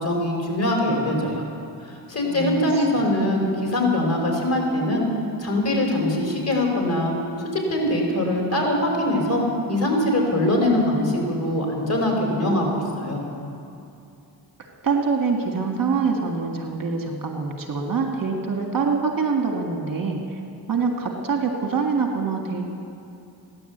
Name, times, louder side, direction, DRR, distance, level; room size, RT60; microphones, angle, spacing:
voice 1, 0.0-1.5 2.1-5.1 5.4-7.1 7.5-13.2, left 1 dB, 35° left, 0 dB, 4.9 m, -22 dB
voice 2, 2.3-2.9 14.6-20.2 20.7-22.7, right 5 dB, 50° right, 2 dB, 2.0 m, -25 dB
16.0 x 11.0 x 8.0 m, 2.7 s
cardioid pair, 80°, 44 cm